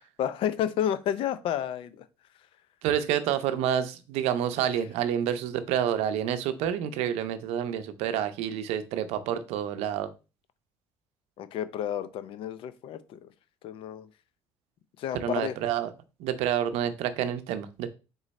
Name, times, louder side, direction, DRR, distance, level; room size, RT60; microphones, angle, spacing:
voice 1, 0.2-2.0 11.4-13.3 13.6-14.1 15.0-15.6, left 10 dB, 55° left, 13 dB, 0.5 m, -31 dB
voice 2, 2.8-10.1 15.1-15.9 16.2-17.9, right 10 dB, 80° right, 11 dB, 0.6 m, -28 dB
3.8 x 3.1 x 4.0 m, 0.31 s
cardioid pair, 135°, 11 cm